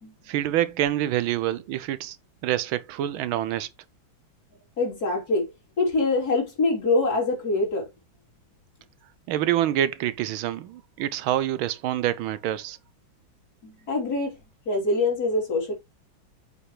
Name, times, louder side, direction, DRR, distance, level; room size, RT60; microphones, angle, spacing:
voice 1, 0.3-2.2 2.4-3.7 9.3-12.8, right 12 dB, 85° right, 1.5 m, -26 dB
voice 2, 4.8-5.5 5.8-7.9 13.6-14.4 14.7-15.7, left 2 dB, 45° left, 3.9 m, -24 dB
8.0 x 5.6 x 3.2 m
omnidirectional pair, 2.2 m